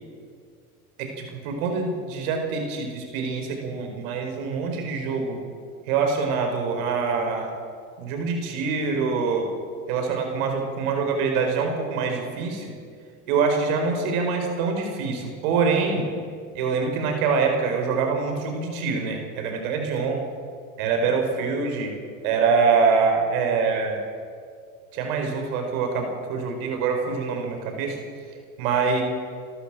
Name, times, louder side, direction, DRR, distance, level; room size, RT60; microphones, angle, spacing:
voice 1, 1.0-5.4 5.9-7.5 8.0-9.5 9.9-12.7 13.3-16.1 16.5-20.1 20.8-21.9 22.2-24.0 24.9-28.0 28.6-29.0, right 5 dB, 70° right, 3 dB, 5.0 m, -25 dB
27.5 x 13.0 x 7.7 m, 2.2 s
hypercardioid pair, 90°, 43 cm